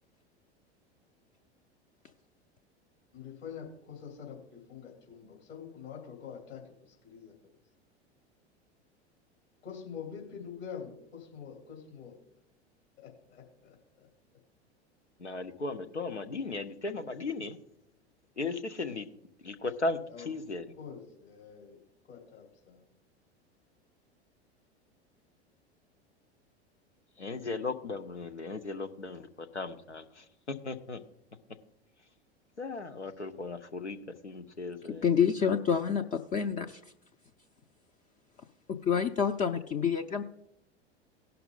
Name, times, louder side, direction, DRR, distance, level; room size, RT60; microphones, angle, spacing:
voice 1, 3.1-7.5 9.6-12.1 13.0-14.1 20.0-20.3 20.8-21.8 22.1-22.9, left 7 dB, 60° left, -1 dB, 2.9 m, -46 dB
voice 2, 15.2-17.6 18.4-19.1 19.4-20.6 27.2-30.2 30.6-31.0 32.6-35.0, left 3 dB, 90° left, 10 dB, 0.8 m, -36 dB
voice 3, 35.0-36.8 38.7-40.2, left 7 dB, 25° left, 4 dB, 0.5 m, -28 dB
17.0 x 5.7 x 3.8 m, 0.77 s
figure-of-eight pair, 85°, 33 cm